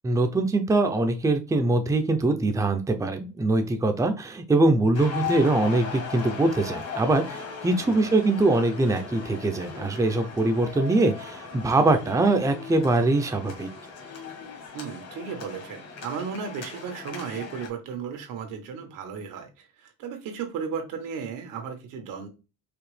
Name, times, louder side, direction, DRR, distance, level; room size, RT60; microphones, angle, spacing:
voice 1, 0.0-13.7, right 2 dB, 10° right, 6 dB, 0.6 m, -23 dB
sound 1, 4.9-17.7, left 5 dB, 55° left, 1.5 m, -38 dB
voice 2, 7.9-8.2 14.7-22.3, right 6 dB, 85° right, 5 dB, 1.5 m, -35 dB
4.9 x 3.0 x 3.3 m, 0.29 s
cardioid pair, 110°, 32 cm